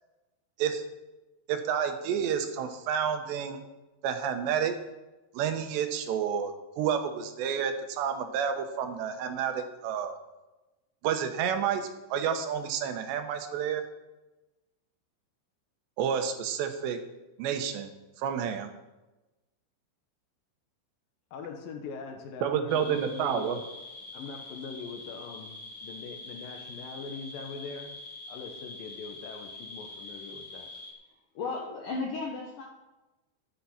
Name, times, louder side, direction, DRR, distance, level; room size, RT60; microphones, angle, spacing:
voice 1, 1.5-3.6 4.0-4.7 5.3-10.2 11.0-13.8 16.0-17.0 17.4-17.9 18.2-18.7 22.4-23.6, right 8 dB, 75° right, 7 dB, 3.0 m, -30 dB
voice 2, 21.3-23.7 24.1-27.9 28.3-30.7, left 5 dB, 85° left, 4 dB, 2.0 m, -42 dB
sound 1, 22.7-30.9, left 2 dB, 45° left, 2.7 m, -44 dB
voice 3, 31.3-32.7, left 3 dB, 70° left, -1 dB, 2.0 m, -34 dB
13.0 x 8.4 x 5.7 m, 1.1 s
omnidirectional pair, 5.6 m